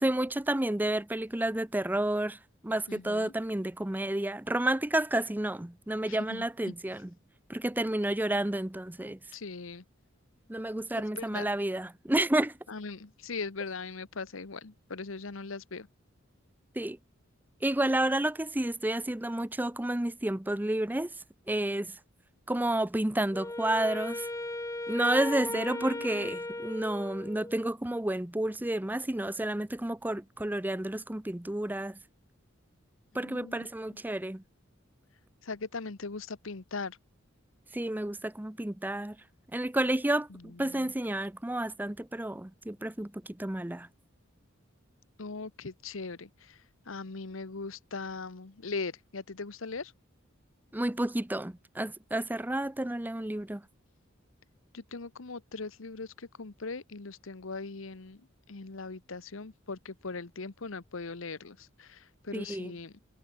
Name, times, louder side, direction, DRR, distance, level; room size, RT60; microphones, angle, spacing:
voice 1, 0.0-7.1 7.5-9.2 10.5-12.6 16.8-17.0 17.6-21.1 21.5-22.0 22.5-24.3 24.9-32.0 33.1-34.4 37.7-39.2 39.5-43.9 50.7-53.6 62.3-62.7, right 1 dB, 10° right, 0.6 m, -30 dB
voice 2, 2.9-3.3 6.1-6.4 9.3-9.8 11.1-11.5 12.7-15.9 25.5-26.3 33.1-33.7 35.4-37.0 40.3-40.9 45.2-46.6 46.9-49.9 54.7-63.0, left 4 dB, 80° left, 1.1 m, -40 dB
Wind instrument woodwind instrument, 23.3-27.7, left 2 dB, 15° left, 1.2 m, -37 dB
head